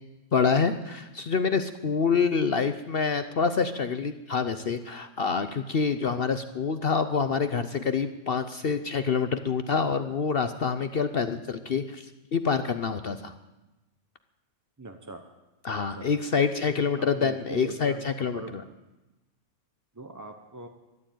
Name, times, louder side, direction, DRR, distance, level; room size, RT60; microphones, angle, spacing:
voice 1, 0.3-13.3 15.6-18.6, left 5 dB, 50° left, 10 dB, 0.8 m, -27 dB
voice 2, 14.8-15.2 16.0-16.1 17.0-18.1 18.3-18.5 19.9-20.7, right 2 dB, 15° right, 4 dB, 0.7 m, -41 dB
13.5 x 11.5 x 9.1 m, 1.1 s
omnidirectional pair, 1.6 m